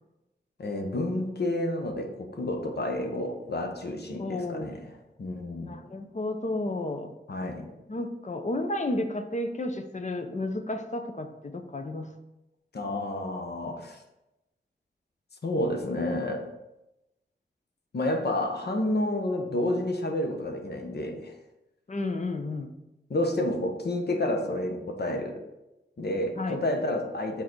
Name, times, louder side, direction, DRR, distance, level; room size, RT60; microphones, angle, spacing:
voice 1, 0.6-5.7 7.3-7.7 12.7-14.0 15.4-16.4 17.9-21.3 23.1-25.3 26.0-27.4, left 1 dB, 60° left, 4 dB, 1.0 m, -30 dB
voice 2, 4.2-4.8 5.6-7.1 7.9-12.1 21.9-22.7 26.4-26.6, left 2 dB, 40° left, 6 dB, 0.8 m, -32 dB
6.4 x 4.1 x 4.6 m, 0.95 s
wide cardioid pair, 70°, 19 cm